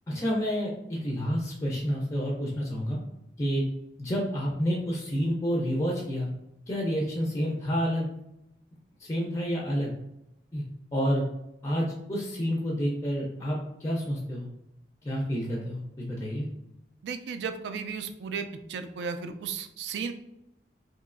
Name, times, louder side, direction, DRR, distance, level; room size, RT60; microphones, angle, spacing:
voice 1, 0.1-3.0 3.4-3.6 4.0-6.3 6.7-8.1 9.0-9.9 10.5-10.6 10.9-11.3 11.6-14.5 15.0-16.5, equal, 20° left, -2 dB, 0.4 m, -29 dB
voice 2, 17.0-20.1, right 5 dB, 75° right, 9 dB, 0.3 m, -35 dB
3.0 x 2.7 x 2.4 m, 0.86 s
head